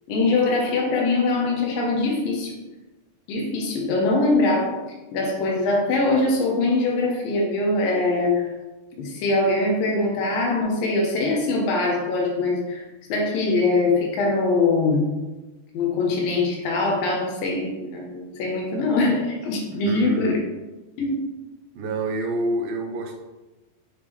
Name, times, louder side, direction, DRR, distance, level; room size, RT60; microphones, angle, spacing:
voice 1, 0.1-2.6 3.3-4.7 5.1-8.5 9.0-15.1 15.7-20.4 21.0-21.3, left 2 dB, 90° left, -1 dB, 2.6 m, -22 dB
voice 2, 19.7-20.4 21.8-23.2, right 2 dB, 85° right, 3 dB, 2.5 m, -28 dB
8.8 x 3.5 x 3.2 m, 1.1 s
omnidirectional pair, 3.9 m